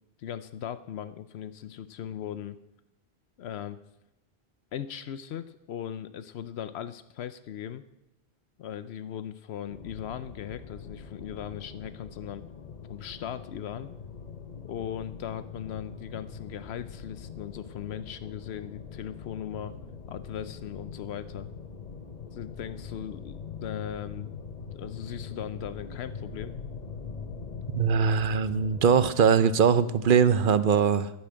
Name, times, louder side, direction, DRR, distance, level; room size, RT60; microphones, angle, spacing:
voice 1, 0.2-2.6 3.4-3.8 4.7-7.8 8.6-12.4 12.9-13.9 14.6-19.7 20.1-21.5 22.3-24.4 24.7-26.5, left 9 dB, 80° left, 13 dB, 0.9 m, -38 dB
sound 1, 9.7-29.1, left 5 dB, 45° left, 1.0 m, -42 dB
voice 2, 27.7-31.1, right 6 dB, 60° right, 14 dB, 0.8 m, -21 dB
11.0 x 10.5 x 7.6 m, 0.90 s
omnidirectional pair, 1.1 m